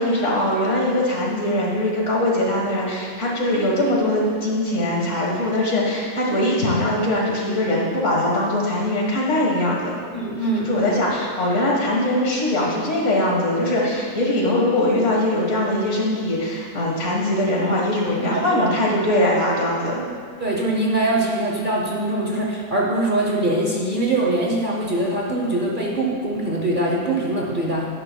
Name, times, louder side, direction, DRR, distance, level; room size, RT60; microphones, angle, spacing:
voice 1, 0.0-10.0 10.7-20.1, left 1 dB, 55° left, -2 dB, 1.8 m, -21 dB
voice 2, 10.1-10.9 18.2-18.7 20.4-27.9, right 1 dB, 40° right, -3 dB, 0.9 m, -23 dB
11.0 x 10.0 x 2.2 m, 2.1 s
omnidirectional pair, 1.5 m